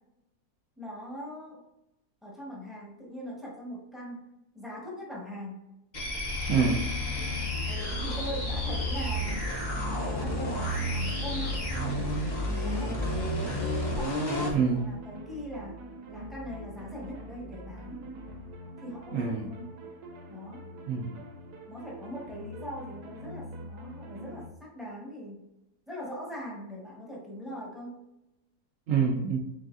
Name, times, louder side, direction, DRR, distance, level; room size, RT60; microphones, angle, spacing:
voice 1, 0.8-1.7 2.2-4.2 4.5-5.6 7.7-9.4 9.9-13.6 13.9-15.8 16.1-18.0 18.8-19.7 20.3-20.6 21.7-25.4 25.9-28.0, equal, ahead, -4 dB, 0.8 m, -41 dB
sound 1, 5.9-14.6, left 1 dB, 40° left, 0.7 m, -31 dB
voice 2, 6.5-6.8 14.5-14.8 19.1-19.5 20.9-21.1 28.9-29.4, right 6 dB, 70° right, -1 dB, 0.9 m, -26 dB
sound 2, 6.6-24.5, right 1 dB, 85° right, 1.2 m, -45 dB
4.0 x 3.4 x 2.5 m, 0.92 s
omnidirectional pair, 1.7 m